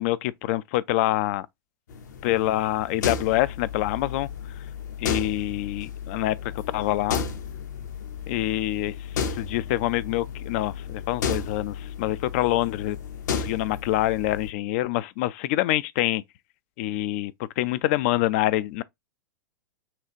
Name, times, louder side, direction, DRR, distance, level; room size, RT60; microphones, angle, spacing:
voice 1, 0.0-1.5 2.2-4.3 5.0-6.4 6.7-7.2 8.3-8.9 9.3-13.0 13.3-16.2 16.8-18.8, left 15 dB, 40° left, 0.4 m, -26 dB
sound 1, 1.9-14.5, left 6 dB, 55° left, 0.8 m, -33 dB
5.8 x 2.3 x 2.8 m
figure-of-eight pair, 100°, 11 cm